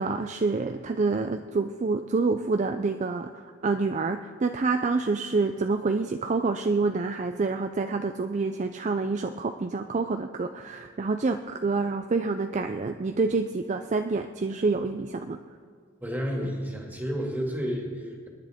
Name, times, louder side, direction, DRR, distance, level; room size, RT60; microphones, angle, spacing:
voice 1, 0.0-15.4, right 3 dB, 35° right, 7 dB, 0.4 m, -27 dB
voice 2, 16.0-18.3, equal, 10° right, 0 dB, 2.1 m, -31 dB
26.0 x 10.5 x 3.6 m, 2.1 s
head